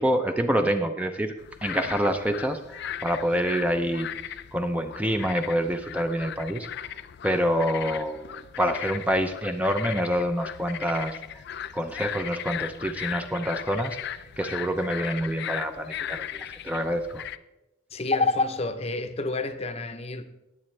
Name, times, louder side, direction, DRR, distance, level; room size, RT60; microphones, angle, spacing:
voice 1, 0.0-1.3 1.6-6.7 7.2-11.4 11.7-17.2, equal, 5° right, 0.5 m, -27 dB
sound 1, 1.4-17.4, left 10 dB, 55° left, 0.4 m, -37 dB
voice 2, 17.9-20.2, left 3 dB, 30° left, 0.7 m, -27 dB
18.0 x 8.0 x 3.3 m
head